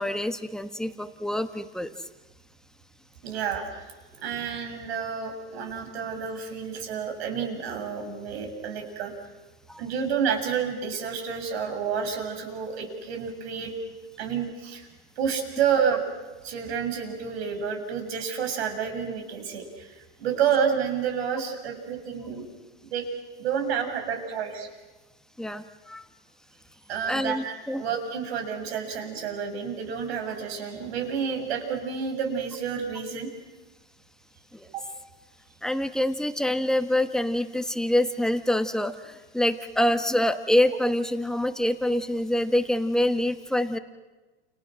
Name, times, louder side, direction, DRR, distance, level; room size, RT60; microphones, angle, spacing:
voice 1, 0.0-1.9 9.7-9.8 25.4-26.0 27.1-27.8 34.5-34.7 35.6-43.8, left 1 dB, ahead, 8 dB, 1.3 m, -26 dB
voice 2, 3.2-3.9 4.2-9.1 9.8-13.7 14.2-14.9 15.2-16.0 16.4-22.4 22.8-23.0 23.4-24.7 26.9-33.3 34.7-34.8, right 7 dB, 75° right, 5 dB, 7.3 m, -29 dB
30.0 x 30.0 x 6.4 m, 1.2 s
supercardioid pair, 140°, 32 cm